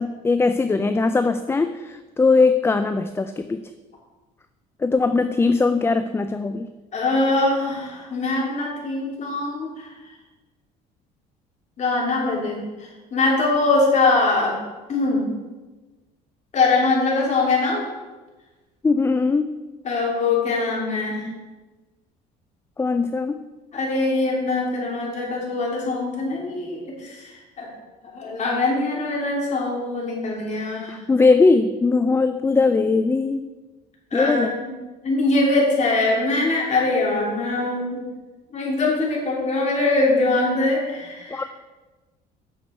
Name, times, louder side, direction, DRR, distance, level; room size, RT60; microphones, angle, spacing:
voice 1, 0.0-3.6 4.8-6.7 18.8-19.5 22.8-23.4 30.9-33.4 34.1-34.5 41.3-41.4, left 4 dB, 15° left, 10 dB, 0.4 m, -20 dB
voice 2, 6.9-9.9 11.8-14.6 14.9-15.2 16.5-17.8 19.8-21.2 23.7-27.7 28.1-31.0 34.1-34.7 35.0-38.0 38.5-41.4, left 3 dB, 40° left, -3 dB, 3.1 m, -22 dB
8.5 x 6.8 x 4.4 m, 1.2 s
cardioid pair, 105°, 18 cm